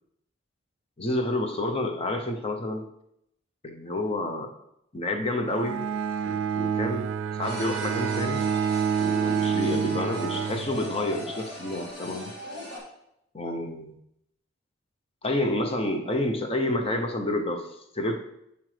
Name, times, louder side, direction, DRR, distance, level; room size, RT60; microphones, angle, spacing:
voice 1, 1.0-2.9 3.6-4.5 4.9-5.9 6.2-8.4 9.0-12.3 13.3-14.0 15.2-18.2, left 1 dB, 30° left, 4 dB, 0.8 m, -29 dB
Bowed string instrument, 5.5-11.3, right 7 dB, 85° right, 0.3 m, -28 dB
sound 1, 7.4-12.8, equal, 65° left, 2.4 m, -39 dB
7.6 x 7.2 x 3.3 m, 0.78 s
head